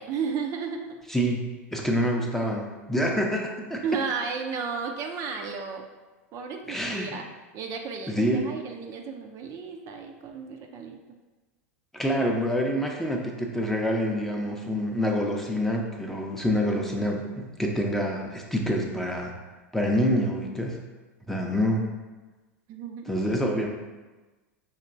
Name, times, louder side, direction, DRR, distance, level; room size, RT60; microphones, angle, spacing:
voice 1, 0.0-1.0 3.8-5.9 6.3-11.0 21.5-21.7 22.7-23.2, right 5 dB, 45° right, 3 dB, 0.4 m, -33 dB
voice 2, 1.1-3.8 6.7-7.1 8.1-8.4 11.9-19.3 19.7-20.8 21.3-21.8 23.1-23.7, equal, 5° left, 0 dB, 0.6 m, -27 dB
5.4 x 2.8 x 2.5 m, 1.2 s
hypercardioid pair, 95°, 8 cm